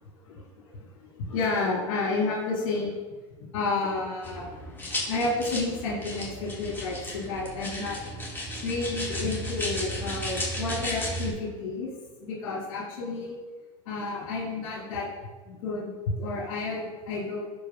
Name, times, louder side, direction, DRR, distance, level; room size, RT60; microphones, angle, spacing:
voice 1, 0.3-0.8 1.2-3.0 3.5-4.5 5.1-8.0 8.6-11.9 12.2-13.3 13.9-15.1 15.5-15.9 16.2-17.5, left 3 dB, 80° left, -7 dB, 2.0 m, -31 dB
sound 1, 4.2-11.3, equal, 15° left, 1.8 m, -34 dB
11.5 x 4.1 x 2.3 m, 1.2 s
hypercardioid pair, 100°, 17 cm